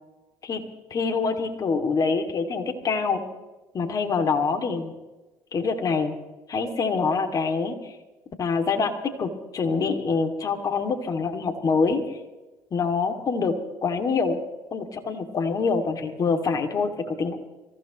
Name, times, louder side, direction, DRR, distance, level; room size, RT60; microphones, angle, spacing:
voice 1, 0.9-3.2 3.7-4.9 5.5-6.1 6.5-7.9 8.4-8.9 9.2-12.2 12.7-13.5 13.8-14.4 14.7-17.4, left 4 dB, 45° left, 5 dB, 2.6 m, -25 dB
25.5 x 15.0 x 3.1 m, 1.1 s
supercardioid pair, 70°, 8 cm